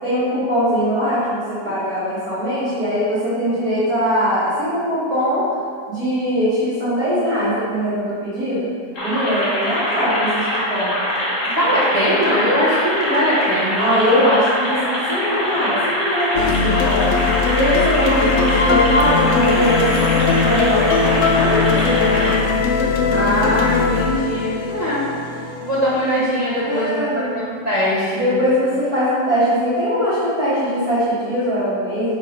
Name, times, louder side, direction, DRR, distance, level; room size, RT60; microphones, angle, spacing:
voice 1, 0.0-5.5 5.9-8.7 9.0-10.9 13.8-17.2 17.5-22.4 26.6-27.3 28.1-32.1, equal, 55° right, -14 dB, 2.4 m, -21 dB
sound 1, 8.9-22.4, equal, 45° left, 2.2 m, -23 dB
voice 2, 11.5-13.9 23.1-25.0 25.6-28.3, equal, 25° right, -10 dB, 1.3 m, -21 dB
sound 2, 16.3-26.5, left 5 dB, 70° left, 0.7 m, -19 dB
6.0 x 4.7 x 5.0 m, 2.1 s
omnidirectional pair, 1.9 m